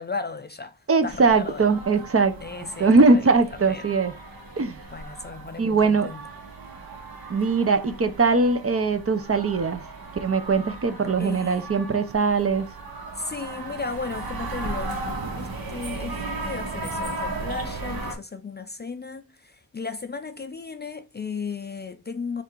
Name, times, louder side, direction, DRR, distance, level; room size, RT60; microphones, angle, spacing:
voice 1, 0.0-1.7 2.4-3.3 3.7-3.9 4.9-6.2 11.2-11.7 13.2-22.4, left 4 dB, 30° left, 0.4 m, -35 dB
voice 2, 0.9-2.3 2.8-4.1 4.6-4.8 5.6-6.1 7.3-9.8 10.2-12.7, right 4 dB, 40° right, 0.6 m, -21 dB
sound 1, 1.1-18.1, right 2 dB, 70° right, 1.0 m, -36 dB
3.4 x 2.5 x 4.4 m
cardioid pair, 65°, 37 cm